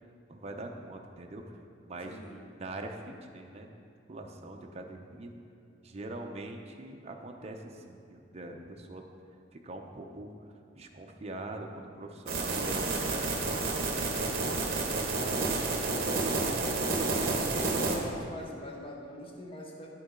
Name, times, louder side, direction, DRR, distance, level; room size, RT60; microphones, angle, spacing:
voice 1, 0.3-1.6 1.8-2.2 2.6-3.7 4.1-5.3 5.8-9.0 9.5-10.3 10.7-13.6 13.9-15.4 15.8-17.7, right 2 dB, 35° right, 2 dB, 0.6 m, -43 dB
voice 2, 2.0-2.4 17.5-19.9, left 1 dB, 30° left, -1 dB, 1.0 m, -43 dB
sound 1, 12.3-18.0, right 3 dB, 55° right, 1.0 m, -30 dB
8.8 x 6.8 x 3.7 m, 2.4 s
head